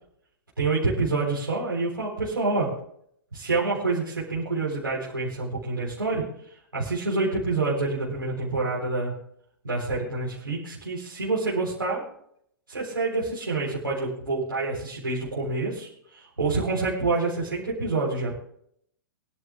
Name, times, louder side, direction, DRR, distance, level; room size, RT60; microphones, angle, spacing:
voice 1, 0.6-2.7 3.3-6.2 6.7-9.1 9.6-12.0 12.7-18.3, right 3 dB, 75° right, -6 dB, 4.1 m, -27 dB
24.0 x 11.0 x 2.4 m, 0.68 s
figure-of-eight pair, 110°, 11 cm